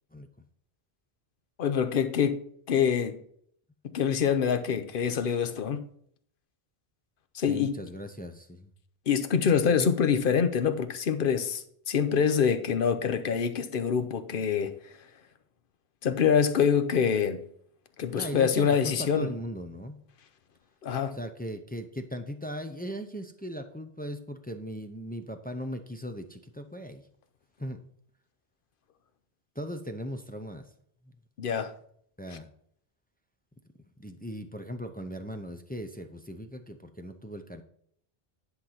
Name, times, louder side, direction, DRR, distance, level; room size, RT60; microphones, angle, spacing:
voice 1, 1.6-2.4 2.7-3.2 3.8-5.8 7.3-7.8 9.1-14.7 16.0-17.4 18.0-19.3 20.8-21.2 31.4-31.7, left 7 dB, 60° left, 0.9 m, -25 dB
voice 2, 7.5-8.7 9.8-9.9 18.2-20.0 21.1-27.1 27.6-27.8 29.5-30.7 31.0-31.1 32.2-32.5 34.0-37.6, equal, 10° left, 0.4 m, -38 dB
10.5 x 4.0 x 5.7 m
omnidirectional pair, 1.1 m